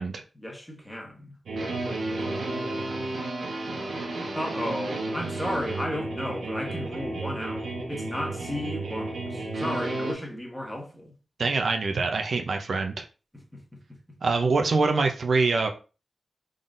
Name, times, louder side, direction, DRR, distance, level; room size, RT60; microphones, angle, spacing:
voice 1, 0.3-1.4 4.3-11.1 13.3-14.0, left 1 dB, 10° left, 1.3 m, -34 dB
sound 1, 1.5-10.1, right 2 dB, 85° right, 1.2 m, -32 dB
voice 2, 11.4-13.0 14.2-15.7, right 3 dB, 70° right, 0.6 m, -24 dB
3.8 x 3.7 x 2.6 m
cardioid pair, 70°, 0 cm